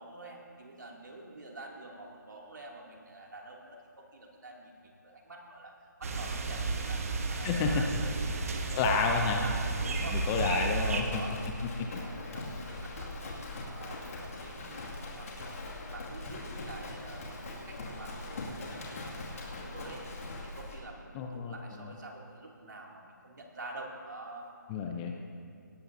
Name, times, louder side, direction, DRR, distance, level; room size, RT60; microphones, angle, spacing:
voice 1, 0.0-5.7 6.0-10.2 10.5-13.1 13.7-15.6 15.9-20.1 20.4-24.5, right 2 dB, 70° right, -1 dB, 2.6 m, -47 dB
sound 1, 6.0-11.0, right 3 dB, 45° right, 1.2 m, -32 dB
voice 2, 7.4-7.8 8.8-9.5 10.1-11.2 11.6-12.0 21.1-21.9 24.7-25.1, left 5 dB, 15° left, 3 dB, 0.5 m, -30 dB
Livestock farm animals working animals, 7.8-20.8, left 2 dB, 45° left, 2.2 m, -42 dB
18.0 x 15.0 x 2.7 m, 2.3 s
figure-of-eight pair, 160°, 11 cm